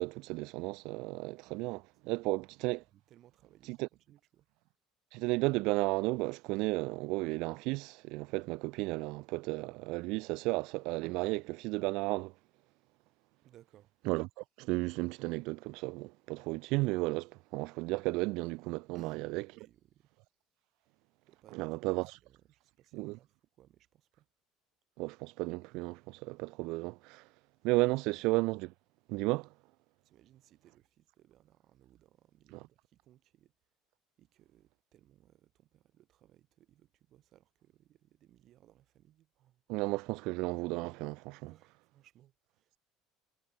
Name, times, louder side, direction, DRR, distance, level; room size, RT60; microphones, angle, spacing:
voice 1, 0.0-2.8 3.7-3.9 5.1-12.3 14.1-19.0 19.3-19.4 21.5-22.1 22.9-23.2 25.0-27.2 27.6-28.7 29.1-29.5 32.5-32.6 39.7-41.5, right 24 dB, 75° right, 0.6 m, -33 dB
voice 2, 1.5-1.8 2.1-4.5 13.4-13.9 18.9-20.1 21.3-21.7 22.0-24.3 27.7-27.9 30.0-33.5 34.2-39.6 41.4-42.8, right 13 dB, 60° right, 6.5 m, -61 dB
supercardioid pair, 85°, 0 cm